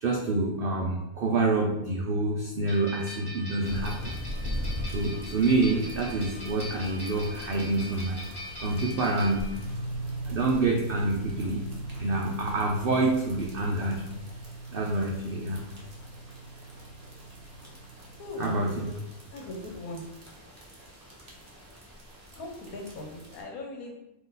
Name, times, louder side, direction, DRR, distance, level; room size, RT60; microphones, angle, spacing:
voice 1, 0.0-4.1 4.9-8.2 8.6-9.5 10.3-11.6 12.0-14.1 14.7-15.6 18.4-18.9, right 2 dB, 75° right, -1 dB, 0.5 m, -27 dB
sound 1, 2.7-9.8, left 1 dB, 20° left, 1.1 m, -42 dB
sound 2, 3.6-23.4, left 1 dB, 30° right, 0.8 m, -42 dB
sound 3, 9.5-19.1, right 2 dB, 50° left, 1.4 m, -40 dB
voice 2, 18.2-18.5 19.3-20.0 22.4-24.0, left 2 dB, 75° left, 1 dB, 1.2 m, -39 dB
3.8 x 2.9 x 3.9 m, 0.89 s
omnidirectional pair, 1.6 m